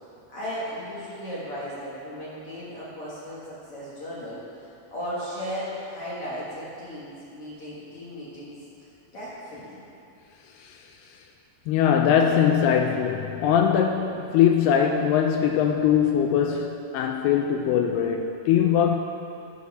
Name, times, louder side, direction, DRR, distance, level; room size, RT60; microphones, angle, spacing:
voice 1, 0.3-8.6 9.1-9.8, equal, 70° left, -8 dB, 1.3 m, -36 dB
voice 2, 11.7-19.0, left 8 dB, 85° left, 4 dB, 2.3 m, -21 dB
12.0 x 5.6 x 6.1 m, 2.7 s
omnidirectional pair, 5.1 m